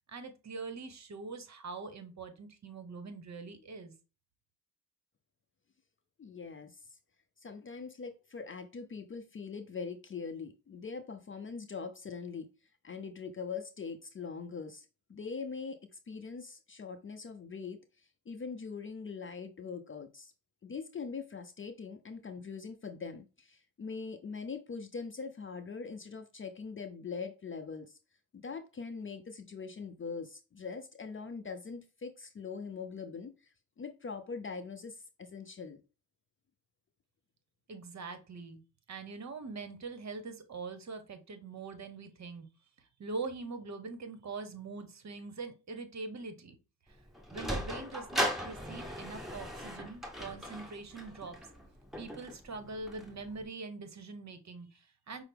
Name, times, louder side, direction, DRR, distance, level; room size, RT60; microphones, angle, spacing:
voice 1, 0.1-3.9 37.7-38.6 38.9-42.5 42.8-46.5 47.3-51.4 52.0-55.2, right 4 dB, 40° right, 0.9 m, -43 dB
voice 2, 6.2-6.8 7.4-12.5 12.8-15.8 16.1-17.8 18.3-20.3 20.6-28.0 28.3-33.3 33.8-35.8, left 5 dB, 30° left, 0.6 m, -42 dB
Sliding door, 46.9-53.4, equal, ahead, 1.3 m, -39 dB
5.5 x 2.0 x 3.4 m
supercardioid pair, 60°, 43 cm